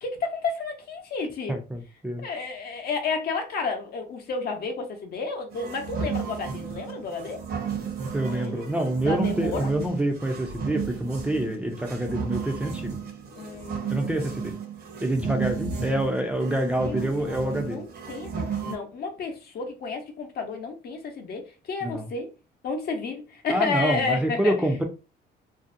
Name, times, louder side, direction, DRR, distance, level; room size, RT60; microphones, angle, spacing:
voice 1, 0.0-1.6 2.2-7.4 8.2-8.7 9.0-9.7 13.4-14.2 16.5-22.3 22.6-24.5, left 4 dB, 60° left, 0.7 m, -32 dB
voice 2, 1.5-2.3 8.1-13.0 13.9-14.5 15.0-17.8 21.8-22.0 23.5-24.8, right 1 dB, 5° right, 0.4 m, -27 dB
sound 1, 5.5-18.8, right 6 dB, 55° right, 0.7 m, -33 dB
2.6 x 2.0 x 2.5 m
cardioid pair, 120°, 19 cm